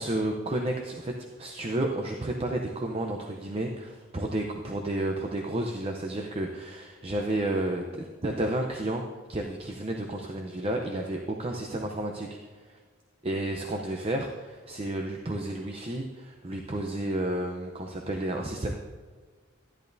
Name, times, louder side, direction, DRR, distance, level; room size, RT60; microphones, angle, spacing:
voice 1, 0.0-12.3 12.7-12.8 13.2-18.7, right 1 dB, 30° right, 2 dB, 0.6 m, -31 dB
12.5 x 10.5 x 2.7 m, 1.5 s
head